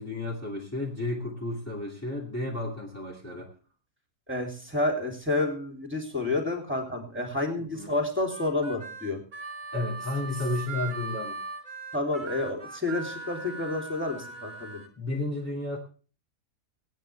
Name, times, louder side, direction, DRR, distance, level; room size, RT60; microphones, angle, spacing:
voice 1, 0.0-3.5 7.6-7.9 9.7-11.4 15.0-15.8, left 2 dB, 10° left, -3 dB, 2.3 m, -32 dB
voice 2, 4.3-9.2 11.9-14.8, left 2 dB, 5° right, 2 dB, 3.0 m, -29 dB
Harmonica, 8.3-14.9, right 3 dB, 35° right, 1.3 m, -39 dB
25.0 x 9.2 x 3.4 m, 0.40 s
omnidirectional pair, 1.6 m